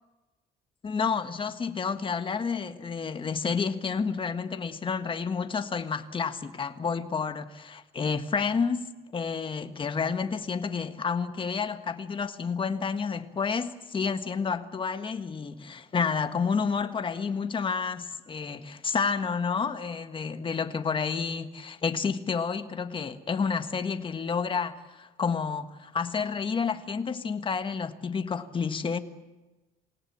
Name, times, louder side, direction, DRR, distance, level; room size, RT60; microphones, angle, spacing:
voice 1, 0.8-29.0, left 5 dB, 30° left, 1.6 m, -30 dB
28.0 x 17.5 x 8.6 m
cardioid pair, 110°, 17 cm